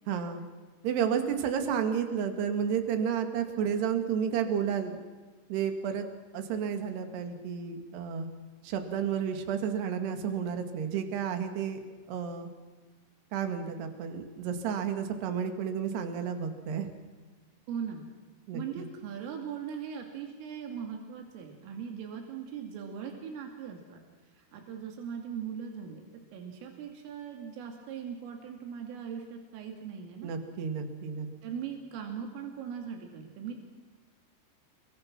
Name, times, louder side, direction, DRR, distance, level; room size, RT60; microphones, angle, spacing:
voice 1, 0.1-0.5 0.8-5.0 5.5-6.1 6.3-8.3 8.6-11.8 12.1-12.5 13.3-16.9 18.5-18.9 30.2-31.3, right 7 dB, 60° right, 6 dB, 4.0 m, -31 dB
voice 2, 17.7-18.1 18.5-24.0 24.4-26.0 26.3-30.3 31.4-33.6, right 7 dB, 90° right, 2 dB, 5.1 m, -40 dB
29.0 x 23.0 x 6.1 m, 1.3 s
omnidirectional pair, 5.6 m